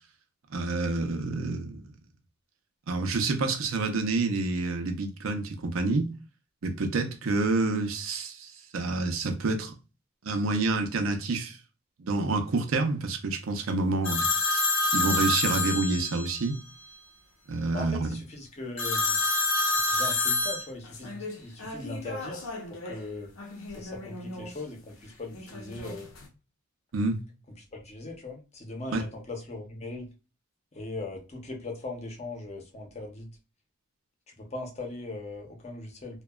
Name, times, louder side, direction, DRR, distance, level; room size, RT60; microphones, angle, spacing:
voice 1, 0.5-1.8 2.9-6.1 6.6-9.7 10.2-11.6 12.0-14.3 14.9-16.6 17.5-18.1 26.9-27.2 28.9-29.0, right 3 dB, 85° right, 0.6 m, -28 dB
sound 1, 14.0-16.5 18.8-23.0 23.4-24.5 25.3-26.3, left 2 dB, 85° left, 0.7 m, -29 dB
voice 2, 17.7-19.2 19.7-23.3 23.7-26.2 27.6-30.1 30.7-33.3 34.3-36.2, left 2 dB, 30° left, 0.7 m, -39 dB
2.8 x 2.2 x 2.3 m
head